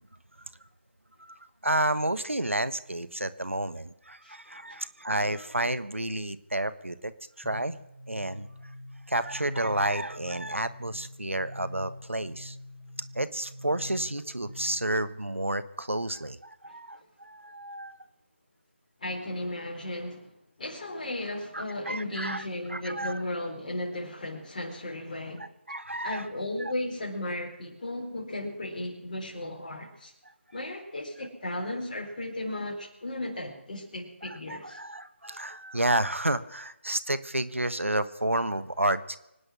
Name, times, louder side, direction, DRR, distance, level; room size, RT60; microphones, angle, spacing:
voice 1, 1.6-7.1 7.4-7.7 8.1-8.5 9.1-12.6 13.1-18.0 21.5-23.2 25.4-26.3 26.6-26.7 34.2-39.2, right 1 dB, 90° right, 14 dB, 1.2 m, -30 dB
sound 1, 7.4-15.0, left 1 dB, 5° left, 3.9 m, -45 dB
voice 2, 19.0-20.3 20.6-25.5 26.0-30.1 30.5-34.8, left 1 dB, 40° left, 1 dB, 4.1 m, -35 dB
25.0 x 8.9 x 6.2 m, 0.84 s
figure-of-eight pair, 160°, 7 cm